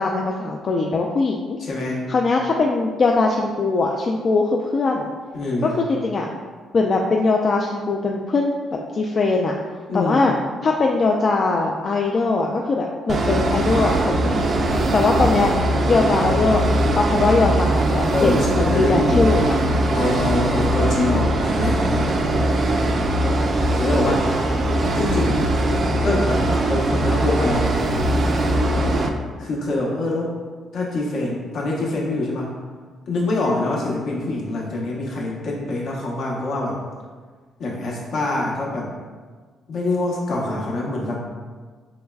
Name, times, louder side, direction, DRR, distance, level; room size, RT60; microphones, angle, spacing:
voice 1, 0.0-1.6 2.1-5.1 5.6-6.3 6.7-8.5 8.9-9.5 9.9-10.3 10.6-14.6 14.9-15.6 15.9-16.6 17.0-19.6, left 3 dB, 45° left, 0 dB, 0.3 m, -21 dB
voice 2, 1.6-2.0 5.3-5.7 9.9-10.3 18.1-19.3 19.9-22.3 23.5-24.2 24.9-25.4 26.0-27.7 29.4-30.4 30.7-32.5 33.1-36.8 37.6-38.9 39.7-41.2, left 2 dB, 65° left, -3 dB, 0.9 m, -25 dB
sound 1, 13.1-29.1, right 1 dB, 50° right, 0.4 m, -21 dB
4.6 x 3.1 x 2.3 m, 1.5 s
cardioid pair, 90°, 0 cm